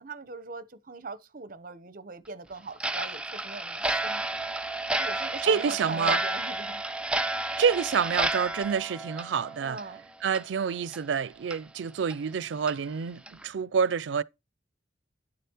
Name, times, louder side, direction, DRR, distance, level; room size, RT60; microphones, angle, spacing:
voice 1, 0.0-4.2 5.0-6.8 9.6-10.1, right 4 dB, 50° right, 0.8 m, -40 dB
Clock, 2.8-10.0 10.3-10.4 10.9-11.0 11.5-11.6 12.1-12.2 12.7-12.8 13.3-13.4, right 2 dB, 5° right, 0.5 m, -31 dB
voice 2, 5.4-6.2 7.6-9.8 10.2-14.2, right 6 dB, 85° right, 0.4 m, -27 dB
9.9 x 6.8 x 2.9 m
head